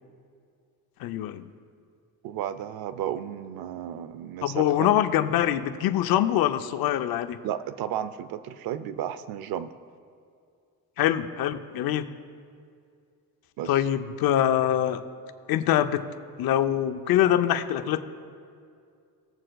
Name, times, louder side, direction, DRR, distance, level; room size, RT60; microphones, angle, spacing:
voice 1, 1.0-1.5 4.4-7.4 11.0-12.1 13.7-15.0 15.5-16.0 16.4-18.0, left 11 dB, 80° left, 10 dB, 0.6 m, -24 dB
voice 2, 2.2-4.9 7.4-9.7 13.6-13.7, right 10 dB, 85° right, 13 dB, 0.6 m, -33 dB
20.0 x 7.6 x 2.3 m, 2.3 s
cardioid pair, 120°, 35 cm